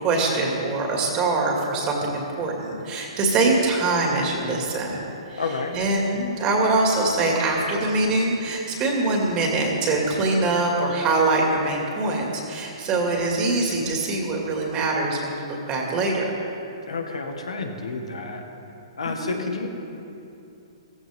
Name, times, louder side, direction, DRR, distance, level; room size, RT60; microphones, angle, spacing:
voice 1, 0.0-5.0 5.3-5.4 5.7-16.2 19.2-19.4, right 2 dB, 30° right, 0 dB, 2.3 m, -23 dB
voice 2, 5.4-5.7 16.9-18.4 19.0-19.7, left 4 dB, 85° left, 3 dB, 1.8 m, -30 dB
15.5 x 15.0 x 3.7 m, 2.8 s
hypercardioid pair, 135°, 3 cm